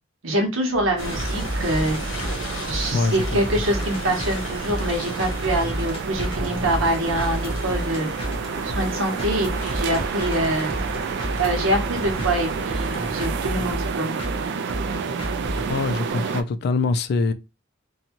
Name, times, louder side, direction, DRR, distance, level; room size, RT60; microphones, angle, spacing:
voice 1, 0.2-2.0 2.7-8.1 8.6-10.8 11.4-14.1, right 1 dB, 85° right, 0.9 m, -25 dB
sound 1, 0.7-16.1, equal, 30° left, 0.7 m, -32 dB
sound 2, 1.0-13.3, left 1 dB, 85° left, 1.0 m, -35 dB
sound 3, 1.0-16.4, right 6 dB, 60° right, 0.3 m, -30 dB
voice 2, 2.9-3.6 15.7-17.3, left 3 dB, 55° left, 0.3 m, -24 dB
2.7 x 2.3 x 2.8 m
head